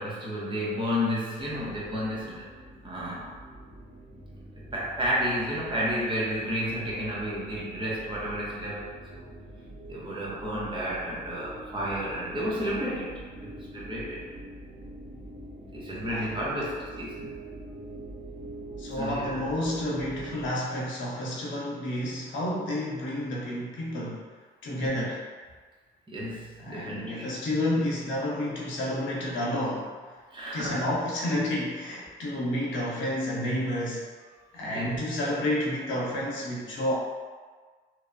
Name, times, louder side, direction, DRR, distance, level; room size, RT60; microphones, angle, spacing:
voice 1, 0.0-2.5 2.8-3.3 4.7-9.0 9.9-14.2 15.7-17.4 19.0-19.4 24.8-25.0 26.1-27.2 30.3-30.8 34.7-35.0, equal, 25° right, -6 dB, 0.8 m, -31 dB
sound 1, 1.3-20.5, right 1 dB, 65° right, 0.9 m, -44 dB
voice 2, 16.1-16.4 18.8-24.3 24.6-25.2 26.6-29.9 30.5-34.1 34.5-36.9, left 1 dB, 70° left, -5 dB, 0.7 m, -30 dB
2.9 x 2.0 x 2.4 m, 1.5 s
cardioid pair, 90°, 20 cm